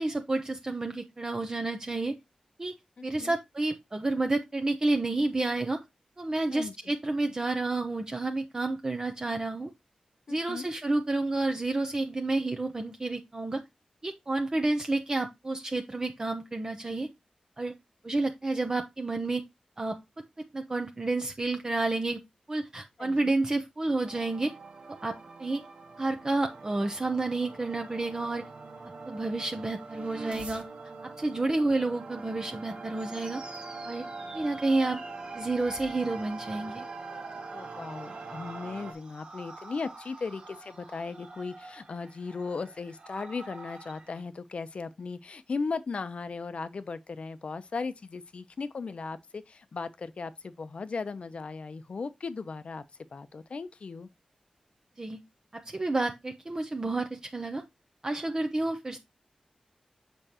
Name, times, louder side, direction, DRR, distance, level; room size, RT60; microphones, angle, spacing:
voice 1, 0.0-2.1 2.6-2.7 3.0-5.8 6.2-9.7 10.3-13.6 14.0-17.1 17.6-17.7 18.0-19.4 19.8-20.0 20.5-22.2 22.5-24.5 24.9-25.6 26.0-28.4 29.1-30.6 31.2-33.4 33.9-34.0 34.3-35.0 35.3-36.8 55.0-55.2 55.5-57.6 58.0-59.0, right 2 dB, 30° right, 0.7 m, -30 dB
voice 2, 3.0-3.3 6.5-6.7 10.3-10.7 23.0-23.3 37.5-52.8 53.1-54.1, left 4 dB, 60° left, 0.7 m, -37 dB
sound 1, 24.0-38.9, right 3 dB, 70° right, 1.5 m, -43 dB
sound 2, 33.0-44.2, right 2 dB, 50° right, 1.6 m, -49 dB
6.8 x 5.3 x 2.9 m
wide cardioid pair, 90°, 2 cm